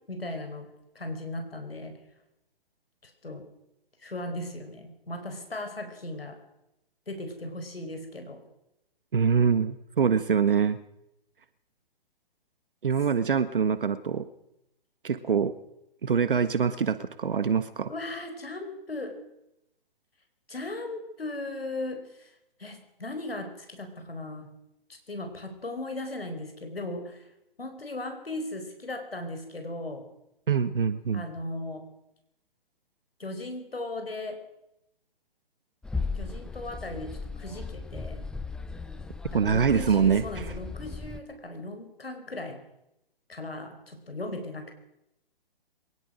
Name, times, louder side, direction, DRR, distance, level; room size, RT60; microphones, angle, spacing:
voice 1, 0.1-0.7 0.9-2.0 3.0-3.4 4.0-6.4 7.1-8.4 17.9-19.2 20.5-22.3 22.6-24.5 24.9-27.3 27.6-30.0 31.1-31.9 33.2-34.4 36.1-38.2 39.3-42.6 43.3-44.7, left 2 dB, 80° left, 6 dB, 4.8 m, -37 dB
voice 2, 9.1-10.8 12.8-14.3 15.0-15.5 16.0-17.9 30.5-31.2 39.3-40.5, right 6 dB, 60° right, 13 dB, 1.5 m, -24 dB
sound 1, 35.8-41.2, left 4 dB, ahead, 0.8 m, -36 dB
23.0 x 20.5 x 6.3 m, 0.83 s
figure-of-eight pair, 130°, 30 cm